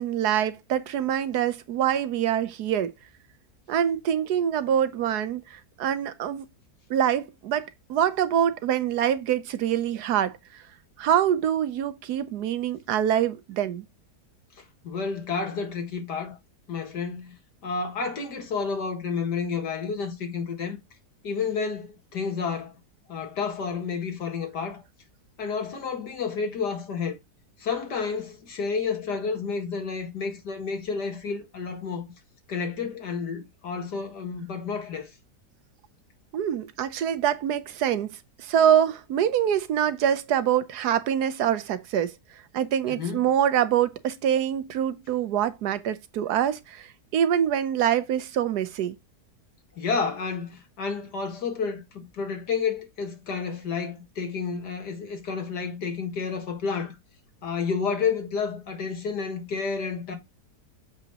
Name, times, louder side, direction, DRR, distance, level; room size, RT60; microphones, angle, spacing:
voice 1, 0.0-2.9 3.7-6.5 6.9-10.6 11.0-13.9 36.3-42.1 42.5-49.0, right 9 dB, 75° right, 1.3 m, -25 dB
voice 2, 14.8-16.4 16.7-17.3 17.6-20.8 21.2-22.8 23.1-24.8 25.4-27.2 27.6-32.1 32.5-35.1 42.9-43.2 49.8-56.9 57.4-60.1, left 5 dB, 90° left, 2.3 m, -30 dB
7.3 x 5.4 x 2.9 m
omnidirectional pair, 1.7 m